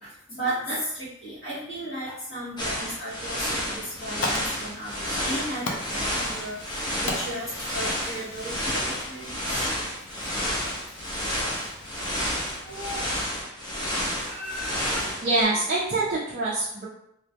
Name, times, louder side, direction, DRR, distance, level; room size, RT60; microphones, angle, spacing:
voice 1, 0.0-6.6 7.0-9.7 12.6-13.1 14.2-15.1, right 1 dB, 45° left, -12 dB, 0.8 m, -35 dB
sound 1, 2.6-15.4, equal, 20° left, 0.6 m, -30 dB
Fire, 3.8-13.2, left 2 dB, 70° left, 0.4 m, -39 dB
voice 2, 15.2-16.9, right 2 dB, 40° right, -6 dB, 0.4 m, -25 dB
2.1 x 2.1 x 2.7 m, 0.75 s
head